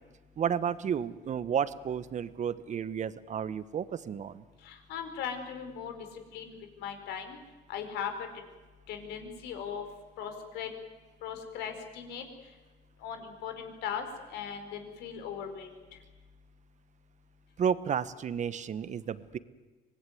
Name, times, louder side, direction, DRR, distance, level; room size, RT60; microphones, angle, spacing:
voice 1, 0.4-4.4 17.6-19.4, right 8 dB, 45° right, 15 dB, 1.2 m, -32 dB
voice 2, 4.6-6.0 6.3-6.5 6.8-7.4 7.7-8.3 8.9-9.8 10.2-10.7 11.2-12.3 13.0-15.7, left 7 dB, 85° left, 6 dB, 4.7 m, -38 dB
25.0 x 20.0 x 9.6 m, 1.3 s
cardioid pair, 110°, 17 cm